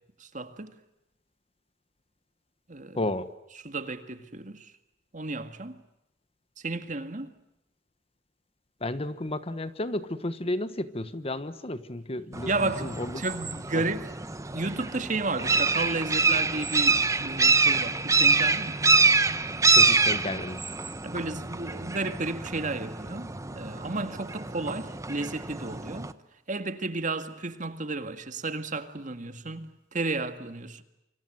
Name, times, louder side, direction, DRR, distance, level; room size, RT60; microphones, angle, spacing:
voice 1, 0.2-0.7 2.7-3.0 3.6-4.7 5.1-5.8 6.6-7.3 12.5-14.1 14.5-18.8 21.0-26.1 26.5-30.8, right 3 dB, 45° right, 1.9 m, -33 dB
voice 2, 2.9-3.3 8.8-13.2 13.7-13.8 19.7-20.6, left 1 dB, 35° left, 1.3 m, -32 dB
sound 1, 12.3-26.1, right 4 dB, 15° right, 1.0 m, -26 dB
27.5 x 26.0 x 7.7 m
head